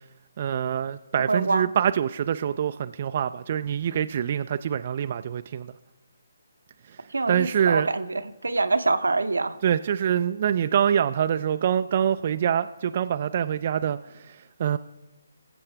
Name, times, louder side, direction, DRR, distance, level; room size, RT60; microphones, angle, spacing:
voice 1, 0.4-5.7 6.9-7.9 9.6-14.8, right 9 dB, 45° right, 0.3 m, -25 dB
voice 2, 1.3-1.6 7.1-9.6, right 3 dB, 85° right, 0.7 m, -25 dB
20.0 x 7.7 x 3.3 m
figure-of-eight pair, 150°, 0 cm